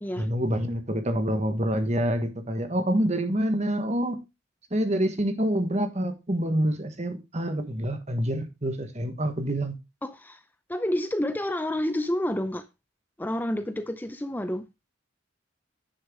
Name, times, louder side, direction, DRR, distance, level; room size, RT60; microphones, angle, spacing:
voice 1, 0.2-4.2 4.7-9.7, right 1 dB, 35° right, 1.3 m, -27 dB
voice 2, 10.0-10.4 10.7-12.6 13.2-14.6, left 1 dB, 10° left, 0.5 m, -29 dB
10.0 x 6.5 x 3.6 m
head